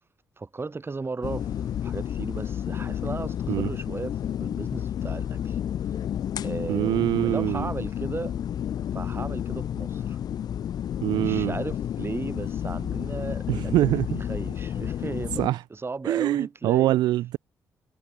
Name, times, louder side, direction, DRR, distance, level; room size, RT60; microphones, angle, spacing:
voice 1, 0.4-5.6 6.4-8.4 8.9-10.2 11.1-15.4 15.7-17.0, right 3 dB, 30° right, 6.1 m, -36 dB
sound 1, 1.2-15.5, left 10 dB, 65° left, 0.8 m, -31 dB
voice 2, 6.7-7.7 11.0-11.5 13.5-14.2 15.4-15.6 16.0-17.4, right 15 dB, 75° right, 0.4 m, -24 dB
supercardioid pair, 55°, 7 cm